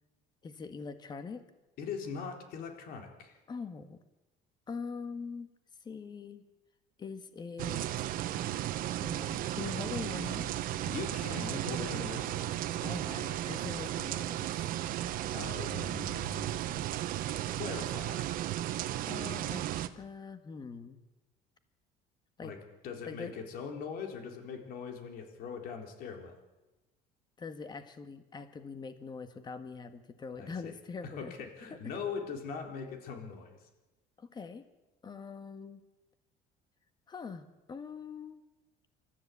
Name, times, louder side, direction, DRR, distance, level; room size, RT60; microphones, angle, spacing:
voice 1, 0.4-1.4 3.5-4.0 4.7-5.5 5.8-6.4 7.0-8.1 9.0-10.5 12.8-14.7 19.0-19.7 19.9-21.0 22.4-22.5 23.1-23.4 27.4-31.3 31.7-31.8 34.2-34.6 35.0-35.8 37.1-38.4, left 5 dB, 25° left, 9 dB, 1.7 m, -43 dB
voice 2, 1.8-3.4 10.8-12.8 15.3-17.0 17.5-18.4 22.4-22.6 22.8-26.4 30.4-30.7 31.0-33.7, left 6 dB, 65° left, 4 dB, 3.9 m, -41 dB
sound 1, 7.6-19.9, right 13 dB, 60° right, 1.1 m, -35 dB
27.0 x 14.0 x 8.4 m, 1.1 s
cardioid pair, 135°, 16 cm